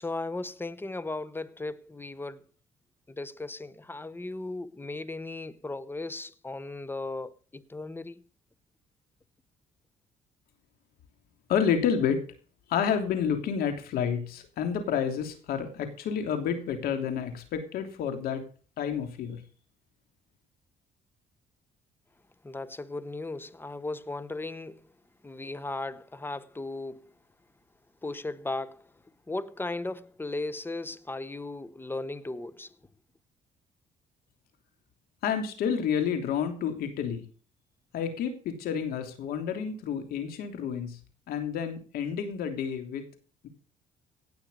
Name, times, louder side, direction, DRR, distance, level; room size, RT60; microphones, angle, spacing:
voice 1, 0.0-2.4 3.1-8.2 22.4-24.8 25.2-27.1 28.0-28.8 29.3-32.7, left 2 dB, 15° left, 1.0 m, -36 dB
voice 2, 11.5-12.2 12.7-18.4 18.8-19.4 35.2-37.2 37.9-41.0 41.3-43.0, left 7 dB, 80° left, 3.1 m, -29 dB
17.5 x 6.5 x 7.0 m
cardioid pair, 85°, 15 cm